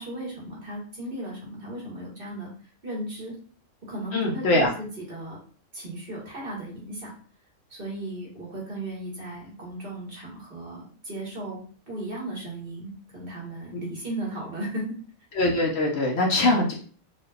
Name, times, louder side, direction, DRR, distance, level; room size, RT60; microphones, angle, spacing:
voice 1, 0.0-2.5 2.8-3.4 3.8-5.4 5.7-7.1 7.7-11.6 11.9-14.9 16.4-16.6, right 1 dB, 45° right, -3 dB, 1.5 m, -36 dB
voice 2, 4.1-4.7 13.7-13.8 15.3-16.7, left 2 dB, 60° left, 0 dB, 0.9 m, -22 dB
4.0 x 2.3 x 3.3 m, 0.43 s
omnidirectional pair, 1.4 m